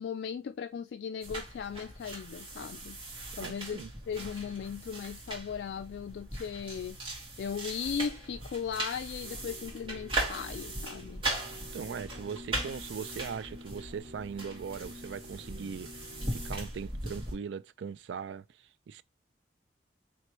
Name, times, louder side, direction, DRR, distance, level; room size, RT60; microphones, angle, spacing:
voice 1, 0.0-3.0 3.4-7.0 7.4-11.2, left 7 dB, 75° left, 0.3 m, -37 dB
sound 1, 1.2-17.3, right 2 dB, 30° right, 1.9 m, -39 dB
voice 2, 3.4-3.9 11.7-15.9 16.3-18.4 18.9-19.0, right 6 dB, 90° right, 0.4 m, -40 dB
sound 2, 9.2-16.6, left 1 dB, 70° right, 1.1 m, -50 dB
4.3 x 3.4 x 3.0 m
head